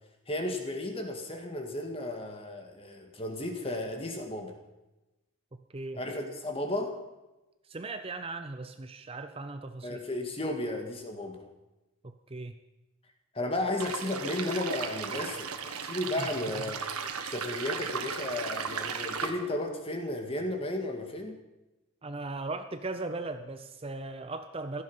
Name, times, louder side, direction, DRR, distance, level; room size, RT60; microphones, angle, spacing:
voice 1, 0.3-4.6 5.9-7.0 9.8-11.5 13.3-16.9 17.3-21.4, left 1 dB, 25° left, 4 dB, 2.0 m, -34 dB
voice 2, 7.6-10.0 12.0-12.6 16.2-16.3 22.0-24.8, right 2 dB, 25° right, 8 dB, 0.6 m, -38 dB
sound 1, 13.8-19.3, right 6 dB, 90° right, 1.5 m, -36 dB
16.0 x 14.0 x 5.6 m, 1.0 s
head